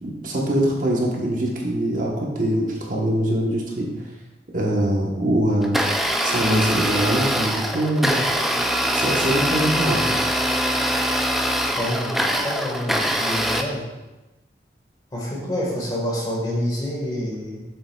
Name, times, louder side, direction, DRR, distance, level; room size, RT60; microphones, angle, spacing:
voice 1, 0.0-4.0 4.5-5.8 6.2-8.3 8.8-10.2, right 1 dB, 50° right, -2 dB, 1.1 m, -23 dB
Domestic sounds home sounds, 5.6-13.6, equal, ahead, 0.3 m, -23 dB
voice 2, 11.7-12.1 12.4-13.8 15.1-17.6, equal, 25° left, -3 dB, 1.6 m, -27 dB
7.6 x 6.6 x 2.3 m, 1.1 s
head